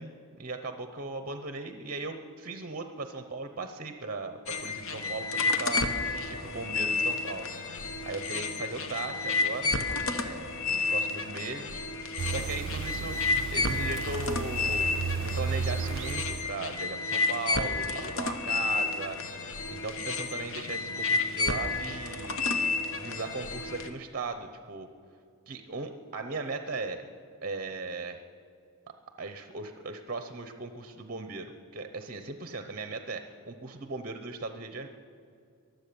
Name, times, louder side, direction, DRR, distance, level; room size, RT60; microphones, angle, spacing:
voice 1, 0.0-5.9 6.3-7.5 8.0-9.8 10.1-11.8 12.3-13.2 13.5-14.9 15.2-19.2 19.7-22.4 22.9-24.9 25.5-27.0 27.4-28.2 29.2-34.9, right 3 dB, 40° right, 7 dB, 0.8 m, -38 dB
sound 1, 4.5-23.9, left 3 dB, 60° left, 1.0 m, -31 dB
sound 2, 12.2-16.5, right 5 dB, 55° right, 0.4 m, -34 dB
23.0 x 8.0 x 6.9 m, 2.4 s
head